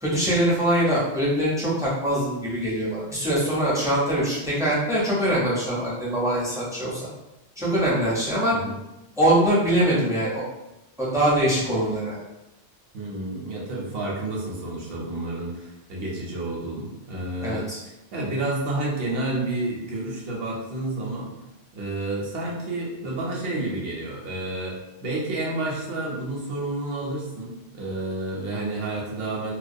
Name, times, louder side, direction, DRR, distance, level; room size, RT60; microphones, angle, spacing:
voice 1, 0.0-7.1 7.6-8.5 9.2-10.4 11.0-12.2 17.4-17.8, right 1 dB, 5° right, -7 dB, 0.3 m, -23 dB
voice 2, 12.9-21.3 21.7-29.5, right 2 dB, 65° right, -3 dB, 0.8 m, -30 dB
2.2 x 2.2 x 2.6 m, 0.95 s
omnidirectional pair, 1.2 m